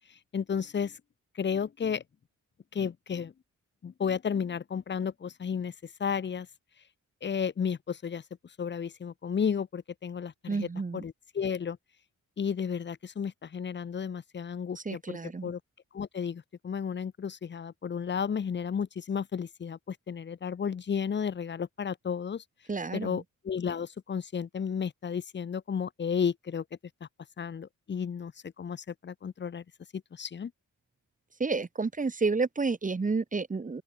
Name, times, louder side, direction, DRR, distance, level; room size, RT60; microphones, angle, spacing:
voice 1, 0.1-1.0 1.3-2.0 2.7-3.3 3.8-6.5 7.2-8.2 8.6-10.7 10.9-11.8 12.4-15.6 15.9-22.4 22.9-26.6 27.4-29.6 30.1-30.5, left 7 dB, 35° left, 0.6 m, -33 dB
voice 2, 10.5-11.0 14.8-15.5 22.7-23.2 31.4-33.8, right 4 dB, 25° right, 1.0 m, -30 dB
open air
wide cardioid pair, 110°, 32 cm